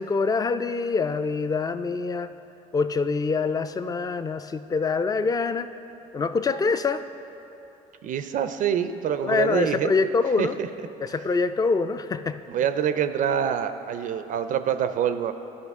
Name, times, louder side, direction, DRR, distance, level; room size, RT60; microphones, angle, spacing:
voice 1, 0.0-2.3 2.7-5.7 6.1-7.0 9.2-10.5 11.0-12.4, left 4 dB, 20° left, 12 dB, 0.4 m, -25 dB
voice 2, 8.0-9.9 10.4-10.7 12.5-15.3, right 9 dB, 50° right, 10 dB, 0.4 m, -25 dB
12.5 x 5.3 x 3.6 m, 2.9 s
hypercardioid pair, 65°, 17 cm